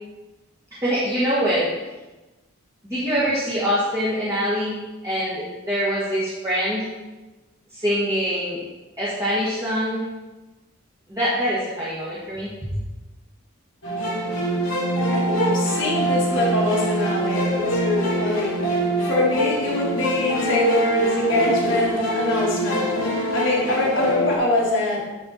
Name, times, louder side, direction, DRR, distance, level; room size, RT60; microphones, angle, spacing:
voice 1, 0.8-1.7 2.8-4.8 5.0-6.9 7.7-8.6 9.0-10.1 11.1-12.7, equal, 15° right, -9 dB, 1.5 m, -24 dB
sound 1, 13.8-24.4, right 1 dB, 75° left, 1.8 m, -24 dB
voice 2, 15.1-25.0, left 1 dB, 55° left, -4 dB, 1.9 m, -24 dB
9.7 x 4.5 x 4.2 m, 1.1 s
head